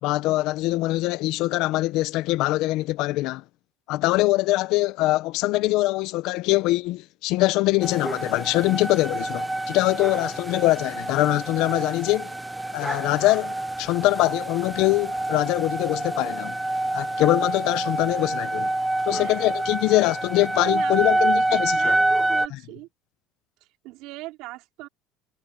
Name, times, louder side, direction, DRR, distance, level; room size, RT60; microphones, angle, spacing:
voice 1, 0.0-3.4 3.9-12.3 12.7-16.6 16.9-18.7 19.1-21.9 22.5-22.6, left 18 dB, 70° left, 0.8 m, -23 dB
sound 1, 7.8-22.5, right 2 dB, 10° right, 0.5 m, -27 dB
voice 2, 19.2-19.5 20.5-22.9 23.8-24.9, right 19 dB, 75° right, 3.7 m, -39 dB
cardioid pair, 115°, 0 cm